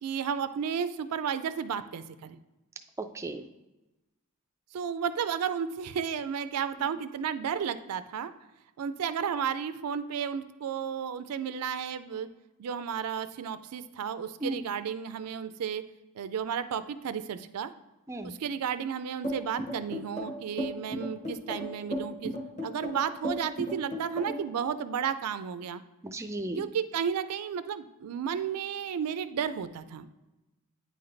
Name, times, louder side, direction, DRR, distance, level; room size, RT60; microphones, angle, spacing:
voice 1, 0.0-2.4 4.7-8.3 8.8-12.3 12.6-15.8 16.2-17.7 18.2-22.4 22.6-25.8 26.6-30.1, right 7 dB, 90° right, 12 dB, 0.4 m, -33 dB
voice 2, 3.0-3.5 14.4-14.7 18.1-18.3 24.3-24.4 26.0-26.7, right 1 dB, 15° right, 7 dB, 0.3 m, -36 dB
sound 1, 19.2-24.5, equal, 30° left, 1.3 m, -34 dB
9.3 x 3.9 x 3.2 m, 1.0 s
head